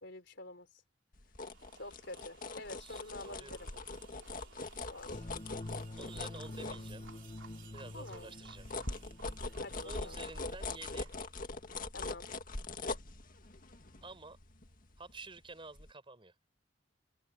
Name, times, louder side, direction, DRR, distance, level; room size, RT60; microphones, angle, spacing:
voice 1, 0.0-0.7 1.7-3.7 4.8-5.3 7.9-8.3 9.6-10.2 11.9-12.3, left 2 dB, 65° left, 4.0 m, -48 dB
sound 1, 1.1-7.4 7.8-15.4 15.8-15.9, left 3 dB, 45° left, 2.0 m, -42 dB
sound 2, 1.4-11.5, right 6 dB, 75° right, 3.4 m, -60 dB
voice 2, 2.8-3.7 5.9-7.0 7.7-8.7 9.8-11.2 14.0-14.4 15.0-16.4, right 3 dB, 30° right, 4.3 m, -50 dB
sound 3, 5.1-10.2, left 1 dB, 30° left, 1.0 m, -47 dB
head